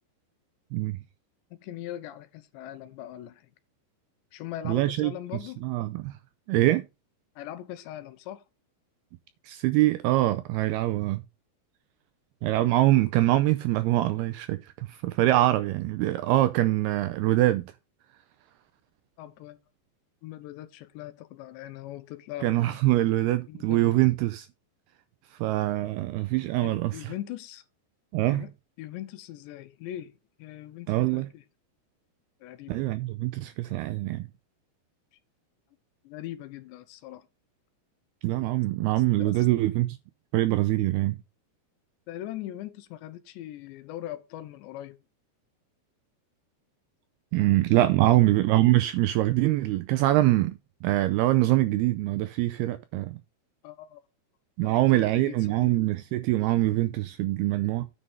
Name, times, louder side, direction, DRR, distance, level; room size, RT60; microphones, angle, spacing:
voice 1, 0.7-1.0 4.7-5.1 5.6-6.1 6.5-6.8 9.4-11.2 12.4-17.7 22.4-24.5 25.4-27.1 28.1-28.5 30.9-31.3 32.7-34.3 38.2-40.0 40.3-41.2 47.3-53.2 54.6-57.8, right 16 dB, 85° right, 2.3 m, -24 dB
voice 2, 1.6-3.4 4.3-5.7 7.4-8.4 19.2-19.6 20.2-22.8 23.5-23.9 26.6-27.6 28.3-28.5 28.8-30.1 30.4-31.4 32.4-32.7 36.0-37.2 39.2-39.5 42.1-45.0 48.0-48.2 53.6-54.0 54.6-55.8, left 13 dB, 80° left, 3.1 m, -40 dB
10.0 x 5.4 x 5.3 m
omnidirectional pair, 5.2 m